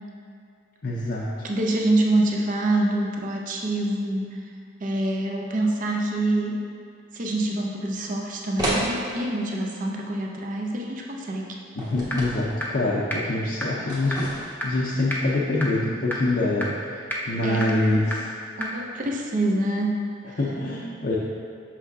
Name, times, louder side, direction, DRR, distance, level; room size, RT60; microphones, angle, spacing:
voice 1, 0.8-1.3 11.8-17.0 17.3-18.2 20.4-21.2, left 2 dB, 55° left, -6 dB, 0.6 m, -25 dB
voice 2, 1.4-4.5 4.8-6.7 7.1-11.6 17.4-17.8 18.6-20.1, right 1 dB, 40° right, 0 dB, 0.5 m, -26 dB
sound 1, 8.6-8.9 11.8-12.4 13.9-14.6, right 1 dB, 20° right, 1.0 m, -29 dB
sound 2, 12.1-12.2 12.6-12.7 13.1-13.2 13.6-13.7 14.1-14.2 14.6-14.7 15.1-15.2 15.6-15.7 16.1-16.2 16.6-16.7 17.1-17.2 17.6-17.7 18.1-18.2 18.6-18.7, left 1 dB, 10° left, 0.5 m, -28 dB
6.2 x 5.8 x 2.7 m, 2.4 s
head